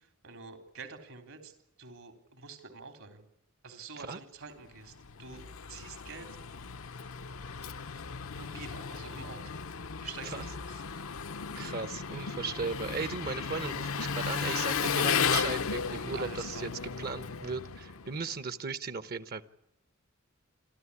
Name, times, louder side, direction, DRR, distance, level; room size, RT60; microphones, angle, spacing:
voice 1, 0.2-1.5 1.8-3.2 3.6-4.9 5.2-6.3 7.9-9.6 10.0-10.8 16.1-16.7, right 5 dB, 75° right, 7 dB, 3.7 m, -47 dB
Engine, 4.8-18.4, left 6 dB, 75° left, 0.9 m, -35 dB
voice 2, 11.6-19.4, right 4 dB, 50° right, 14 dB, 1.0 m, -37 dB
27.5 x 13.0 x 9.8 m, 0.83 s
head